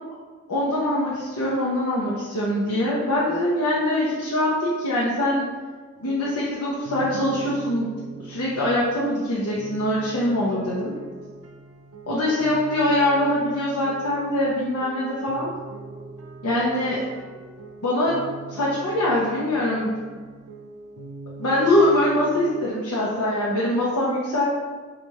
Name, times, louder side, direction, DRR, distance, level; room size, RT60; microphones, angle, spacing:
voice 1, 0.5-5.5 6.0-7.9 8.2-10.9 12.1-15.5 16.4-17.1 17.8-18.2 18.5-20.0 21.4-24.5, left 1 dB, 90° left, -6 dB, 0.7 m, -23 dB
sound 1, 5.9-22.7, right 3 dB, 85° right, 0.5 m, -41 dB
4.2 x 2.4 x 4.6 m, 1.5 s
head